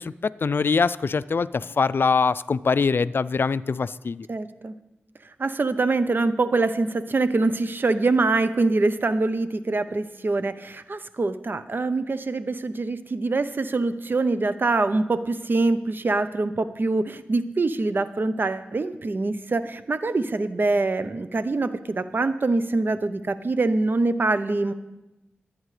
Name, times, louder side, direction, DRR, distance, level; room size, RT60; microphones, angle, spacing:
voice 1, 0.0-4.3, left 5 dB, 60° left, 18 dB, 0.3 m, -23 dB
voice 2, 4.3-4.7 5.4-24.7, right 3 dB, 55° right, 12 dB, 0.7 m, -24 dB
22.0 x 8.9 x 3.3 m, 0.97 s
cardioid pair, 50°, 4 cm